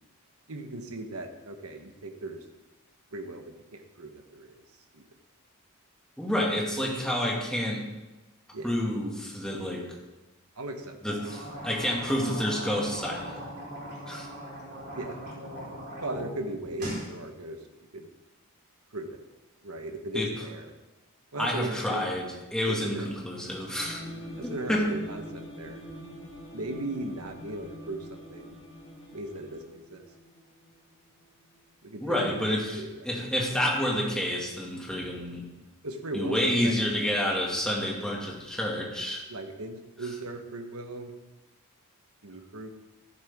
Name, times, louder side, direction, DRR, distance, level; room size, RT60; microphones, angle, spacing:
voice 1, 0.5-2.4 3.1-4.6 4.9-5.0 8.5-8.7 10.6-11.3 14.1-14.3 14.9-15.2 16.0-17.6 17.9-18.1 18.9-19.2 19.6-20.7 21.3-22.1 22.6-23.1 24.4-25.8 26.5-28.6 29.1-30.0 31.8-32.4 32.8-33.2 35.8-37.0 39.3-41.1 42.2-42.7, right 2 dB, 75° right, 4 dB, 1.3 m, -38 dB
voice 2, 6.2-7.8 8.6-9.8 11.0-13.5 14.1-14.3 20.1-20.3 21.4-24.0 24.4-24.9 32.0-35.4 36.1-39.3, equal, 5° left, -3 dB, 2.1 m, -29 dB
sound 1, 11.1-16.2 16.5-17.1, right 1 dB, 50° right, 4.3 m, -39 dB
sound 2, 23.8-31.4, equal, 25° left, 4.3 m, -44 dB
14.0 x 11.5 x 3.7 m, 1.1 s
head